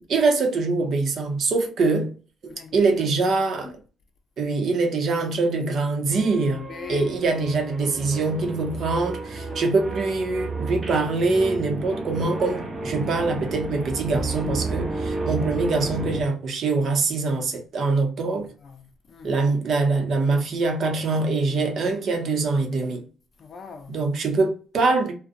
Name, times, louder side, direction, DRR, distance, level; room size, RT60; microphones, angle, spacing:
voice 1, 0.1-2.1 2.4-3.8 4.4-6.6 6.9-18.5 19.2-23.0 23.9-25.1, right 3 dB, 65° right, 0.7 m, -24 dB
voice 2, 2.4-2.7 3.6-3.7 6.7-7.2 9.4-9.8 18.2-19.4 23.4-24.0, left 5 dB, 50° left, 0.5 m, -42 dB
sound 1, 6.1-16.2, right 3 dB, 30° right, 0.7 m, -32 dB
2.5 x 2.1 x 2.5 m
cardioid pair, 90°, 0 cm